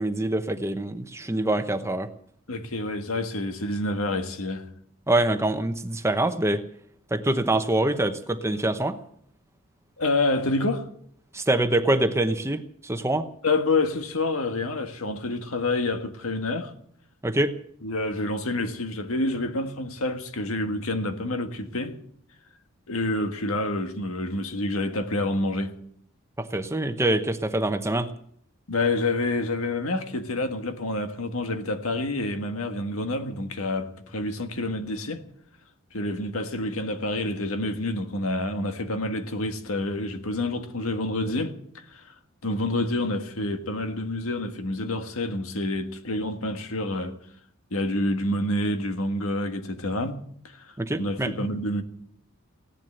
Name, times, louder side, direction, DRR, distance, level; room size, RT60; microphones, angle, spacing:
voice 1, 0.0-2.1 5.1-6.6 7.1-9.0 11.3-13.3 17.2-17.5 26.4-28.1 50.8-51.3, right 1 dB, 15° right, 0.9 m, -25 dB
voice 2, 2.5-4.7 10.0-10.9 13.4-16.7 17.8-22.0 22.9-25.8 28.7-35.2 35.9-41.6 41.9-42.1 42.4-47.2 47.7-50.2 50.6-51.8, left 2 dB, 80° left, 1.6 m, -28 dB
17.0 x 10.5 x 7.9 m
head